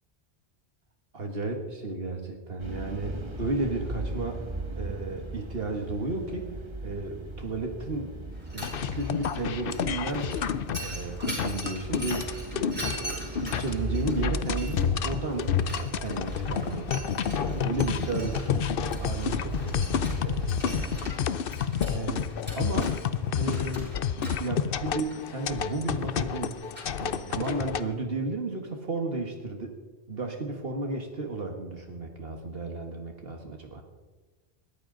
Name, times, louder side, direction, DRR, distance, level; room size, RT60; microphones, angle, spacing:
voice 1, 1.1-4.4 4.8-8.2 8.5-10.3 10.8-18.7 19.0-21.4 21.9-22.3 22.6-23.1 23.4-26.6 27.0-29.8 30.1-33.8, right 3 dB, 60° right, 3 dB, 1.7 m, -34 dB
sound 1, 2.6-21.1, right 2 dB, 25° right, 1.5 m, -37 dB
Mechanisms, 8.3-27.9, right 1 dB, 10° right, 5.8 m, -44 dB
sound 2, 8.6-27.8, left 8 dB, 60° left, 0.8 m, -30 dB
20.5 x 14.0 x 3.9 m, 1.3 s
omnidirectional pair, 1.1 m